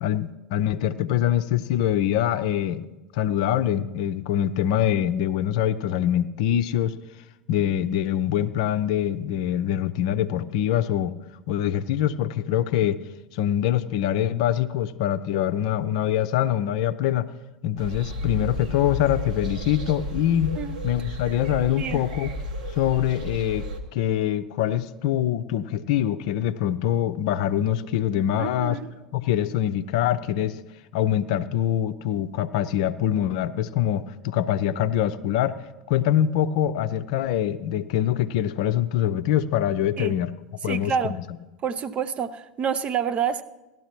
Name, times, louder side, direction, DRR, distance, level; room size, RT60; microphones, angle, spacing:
voice 1, 0.0-2.9 3.1-7.0 7.5-11.1 11.5-13.0 13.3-17.3 17.6-20.6 20.8-22.3 22.7-23.6 23.9-28.8 29.1-30.6 30.9-35.6 35.9-40.3 40.6-40.9, left 11 dB, 55° left, 0.5 m, -24 dB
sound 1, 17.8-23.8, left 1 dB, 70° right, 1.5 m, -32 dB
voice 2, 28.4-28.9 40.0-40.2 40.6-41.2 41.6-43.4, right 7 dB, 30° right, 0.6 m, -28 dB
17.0 x 12.0 x 3.0 m
figure-of-eight pair, 80°, 4 cm